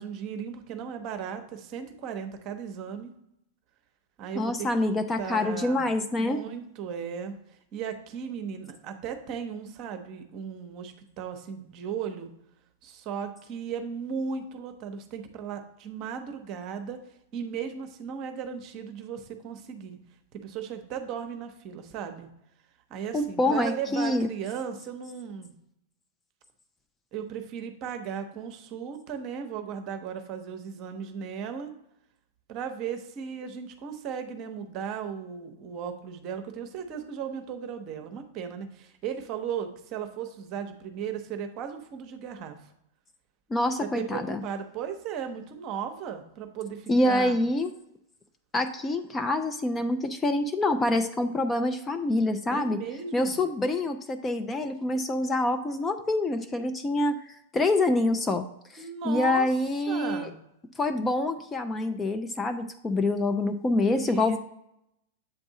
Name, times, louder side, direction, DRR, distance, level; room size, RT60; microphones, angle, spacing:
voice 1, 0.0-3.1 4.2-5.9 6.2-7.3 7.7-12.3 12.8-17.0 17.3-20.0 20.3-22.3 22.9-25.5 27.1-31.7 32.5-42.6 43.8-47.4 52.5-53.4 58.8-59.5 59.9-60.4 63.9-64.4, right 7 dB, 35° right, 7 dB, 0.8 m, -36 dB
voice 2, 4.4-6.4 23.1-24.3 43.5-44.4 46.9-47.7 48.5-52.8 53.1-58.5 58.7-60.3 60.8-64.4, left 2 dB, 15° left, 7 dB, 0.4 m, -26 dB
7.9 x 3.5 x 3.9 m, 0.79 s
figure-of-eight pair, 95°, 0 cm